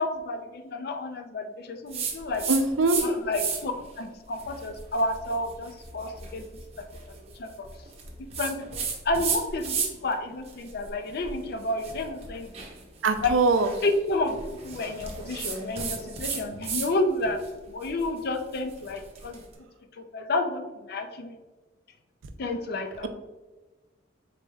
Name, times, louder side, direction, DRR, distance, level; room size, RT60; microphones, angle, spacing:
voice 1, 0.0-2.4 3.0-3.7 4.0-6.5 6.8-7.7 8.4-9.8 10.0-12.6 13.2-13.3 13.8-14.4 14.6-17.4 17.7-19.5 20.0-21.4 22.4-23.1, left 2 dB, 55° left, 6 dB, 0.4 m, -30 dB
sound 1, 1.9-3.1 3.3-3.8 4.3-10.1 10.5-16.9 17.2-19.4, right 5 dB, 35° right, 0.8 m, -34 dB
voice 2, 2.5-3.0 13.0-13.7, right 3 dB, 90° right, 8 dB, 0.5 m, -22 dB
4.9 x 4.1 x 2.3 m, 1.2 s
head